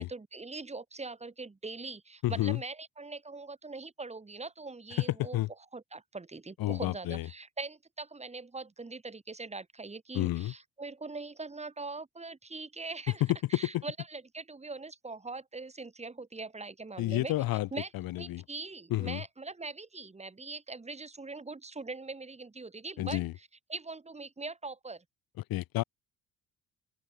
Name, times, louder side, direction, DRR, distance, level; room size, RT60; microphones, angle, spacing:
voice 1, 0.0-5.4 5.7-13.2 13.5-17.3 17.7-17.9 18.2-25.0, right 3 dB, 20° right, 5.4 m, -42 dB
voice 2, 2.2-2.6 5.2-5.5 6.6-7.3 10.1-10.5 13.7-13.8 17.0-17.7 17.9-18.4 18.9-19.2 23.0-23.3 25.5-25.8, left 16 dB, 70° left, 1.1 m, -30 dB
open air
cardioid pair, 125°, 36 cm